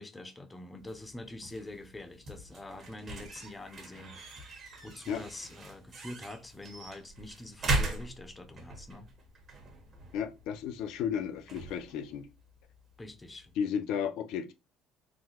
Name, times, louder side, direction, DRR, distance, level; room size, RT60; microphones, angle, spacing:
voice 1, 0.0-4.2 4.8-9.1 13.0-13.5, left 2 dB, 15° left, 0.6 m, -45 dB
sound 1, 0.8-13.5, right 2 dB, 40° right, 1.1 m, -40 dB
voice 2, 10.1-12.3 13.6-14.5, left 8 dB, 75° left, 0.5 m, -33 dB
3.8 x 2.2 x 2.9 m
cardioid pair, 120°, 0 cm